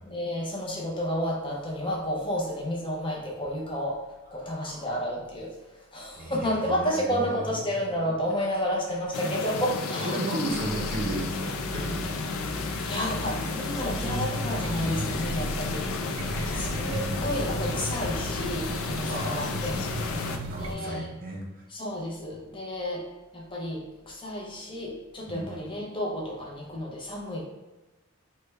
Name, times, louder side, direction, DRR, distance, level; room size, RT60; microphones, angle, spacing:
voice 1, 0.0-10.2 12.8-15.9 16.5-19.8 20.6-21.1 21.7-23.1 23.3-27.4, equal, 25° left, -2 dB, 0.6 m, -31 dB
voice 2, 4.4-4.8 6.2-7.6 10.0-12.1 16.2-17.5 19.1-19.5 19.9-21.4 25.3-25.5, right 1 dB, 45° right, -1 dB, 0.7 m, -35 dB
sound 1, 9.1-20.4, left 4 dB, 85° left, 0.4 m, -32 dB
sound 2, 10.5-18.5, equal, 65° left, 0.9 m, -39 dB
sound 3, 13.9-20.7, right 1 dB, 80° right, 0.4 m, -36 dB
3.2 x 2.2 x 3.2 m, 1.1 s
head